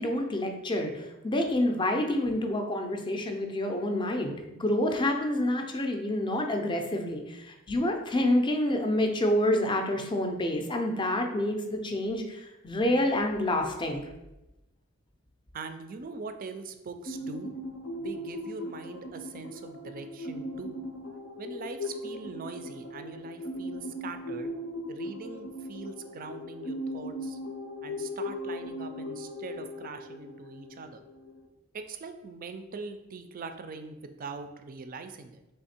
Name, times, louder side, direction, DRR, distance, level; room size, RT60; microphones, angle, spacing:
voice 1, 0.0-4.3 4.6-14.0, left 1 dB, 25° left, 4 dB, 0.5 m, -28 dB
voice 2, 15.5-17.6 18.0-20.8 21.4-24.5 24.9-27.4 27.8-31.0 31.7-35.4, right 4 dB, 45° right, 8 dB, 0.4 m, -42 dB
sound 1, 17.1-31.5, left 1 dB, 70° left, 0.6 m, -38 dB
3.5 x 3.2 x 4.2 m, 0.99 s
head